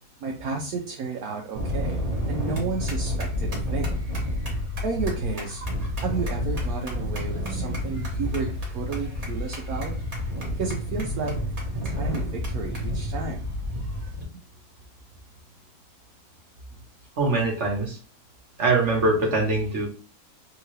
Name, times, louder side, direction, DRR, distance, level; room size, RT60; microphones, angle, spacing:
voice 1, 0.2-2.0 2.3-4.0 4.8-10.0 10.6-13.6, right 4 dB, 75° right, 1 dB, 1.1 m, -32 dB
sound 1, 1.5-14.2, left 1 dB, 25° right, 1.1 m, -29 dB
voice 2, 17.2-18.0 18.6-19.9, right 3 dB, 50° right, -1 dB, 1.4 m, -23 dB
3.6 x 2.8 x 3.1 m, 0.38 s
omnidirectional pair, 1.7 m